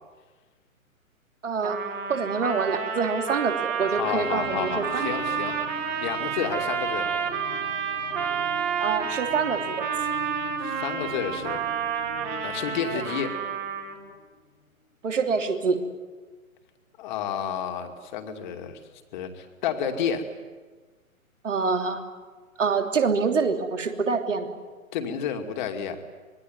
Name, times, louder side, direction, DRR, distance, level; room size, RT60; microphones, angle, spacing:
voice 1, 1.4-1.8 2.1-5.1 8.8-9.9 12.9-13.0 15.0-15.8 21.4-22.0 22.6-24.5, right 5 dB, 55° right, 5 dB, 3.2 m, -26 dB
Trumpet, 1.6-14.1, right 7 dB, 20° right, 3.0 m, -30 dB
sound 1, 3.8-14.7, left 4 dB, 60° left, 2.4 m, -44 dB
voice 2, 3.9-5.6 6.0-7.2 10.6-11.6 12.4-13.3 17.0-18.8 19.1-20.3 24.9-26.0, left 8 dB, 30° left, 5 dB, 2.6 m, -30 dB
26.0 x 21.5 x 9.4 m, 1.4 s
figure-of-eight pair, 125°, 43 cm